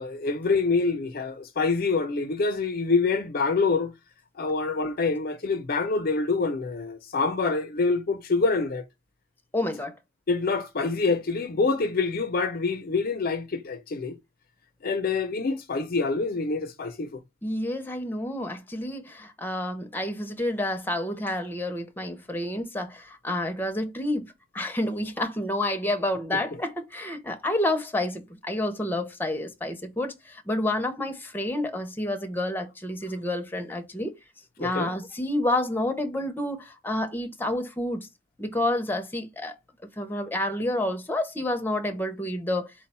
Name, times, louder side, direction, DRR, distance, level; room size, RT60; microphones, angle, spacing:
voice 1, 0.0-3.9 4.4-8.8 10.3-14.2 14.8-17.2 34.6-34.9, left 4 dB, 50° left, 0.5 m, -26 dB
voice 2, 9.5-10.0 17.4-34.2 34.6-38.1 38.4-39.5 40.0-42.7, left 1 dB, 10° left, 0.7 m, -29 dB
4.5 x 2.2 x 4.1 m
head